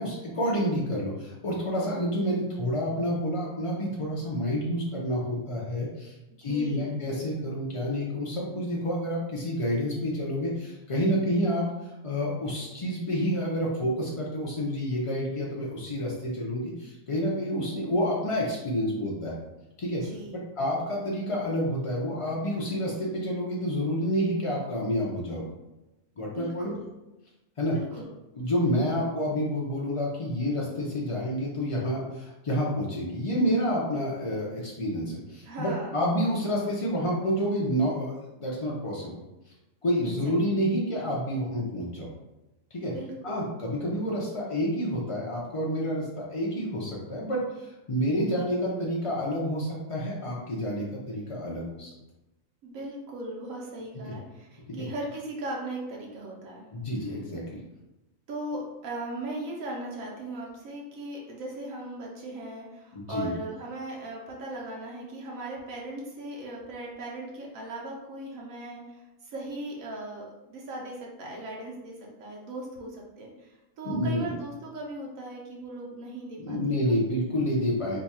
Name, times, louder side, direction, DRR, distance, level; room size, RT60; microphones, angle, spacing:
voice 1, 0.0-19.3 19.8-20.0 20.6-25.4 26.2-26.7 27.6-27.8 28.4-39.1 39.8-42.1 42.7-42.9 43.2-51.9 54.1-54.2 54.7-54.8 56.7-57.6 62.9-63.3 73.8-74.3 76.4-78.0, equal, 55° left, -4 dB, 0.3 m, -29 dB
voice 2, 6.4-7.0 20.0-20.4 26.2-26.9 27.7-28.1 35.4-36.0 42.8-43.4 52.6-56.7 58.3-76.7, right 1 dB, 85° right, -2 dB, 1.1 m, -38 dB
2.9 x 2.3 x 4.1 m, 0.97 s
omnidirectional pair, 1.4 m